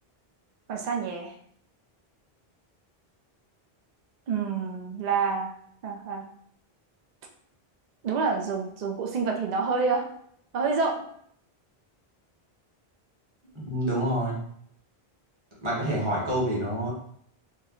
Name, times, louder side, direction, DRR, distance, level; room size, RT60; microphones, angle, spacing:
voice 1, 0.7-1.3 4.3-5.5 5.8-6.2 8.0-10.1 10.5-11.0, right 5 dB, 50° right, 1 dB, 0.6 m, -27 dB
voice 2, 13.6-14.4 15.6-16.9, right 1 dB, 30° right, -5 dB, 1.1 m, -27 dB
3.1 x 2.1 x 3.7 m, 0.66 s
omnidirectional pair, 1.0 m